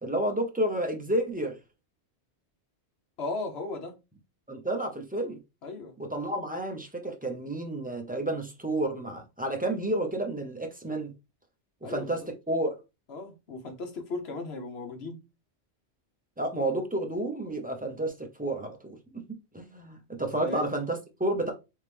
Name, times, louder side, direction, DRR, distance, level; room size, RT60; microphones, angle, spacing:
voice 1, 0.0-1.6 4.5-5.4 6.0-11.1 11.8-12.8 16.4-21.5, right 1 dB, 10° right, 0.5 m, -31 dB
voice 2, 3.2-4.0 5.6-6.0 11.8-12.1 13.1-15.2 20.4-20.7, left 3 dB, 65° left, 1.2 m, -36 dB
3.6 x 3.1 x 3.3 m
omnidirectional pair, 1.2 m